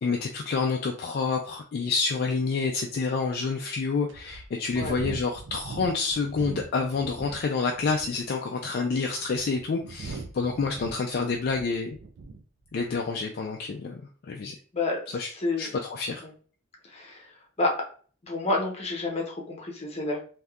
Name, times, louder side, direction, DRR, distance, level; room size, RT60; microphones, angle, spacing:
voice 1, 0.0-12.0 12.7-14.6 15.1-15.3 15.6-16.2, left 4 dB, 50° left, 2 dB, 0.3 m, -28 dB
sound 1, 1.9-2.0 2.6-2.7 3.4-3.5 4.1-7.4 7.7-8.2 8.9-12.4 12.7-13.0, right 3 dB, 60° right, 0.4 m, -41 dB
voice 2, 14.7-15.7 16.2-16.3 16.8-17.3 17.6-17.7 18.2-20.2, left 2 dB, 30° left, 0 dB, 0.8 m, -29 dB
3.4 x 2.7 x 2.3 m, 0.42 s
head